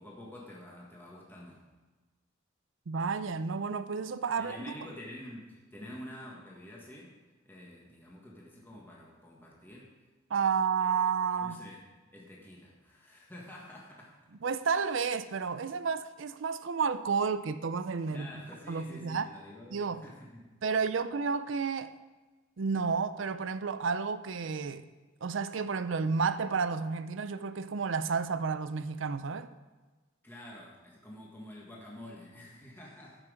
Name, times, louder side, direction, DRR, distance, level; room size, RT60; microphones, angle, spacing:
voice 1, 0.0-1.6 4.4-7.1 7.5-9.9 11.4-11.8 12.1-14.2 18.1-20.5 30.2-33.2, left 1 dB, 10° left, -4 dB, 1.7 m, -48 dB
voice 2, 2.9-4.6 10.3-11.6 14.4-18.3 18.7-19.3 19.7-20.0 20.6-22.0 22.6-24.9 25.2-29.5, right 5 dB, 70° right, 12 dB, 0.5 m, -31 dB
14.0 x 6.0 x 5.1 m, 1.2 s
head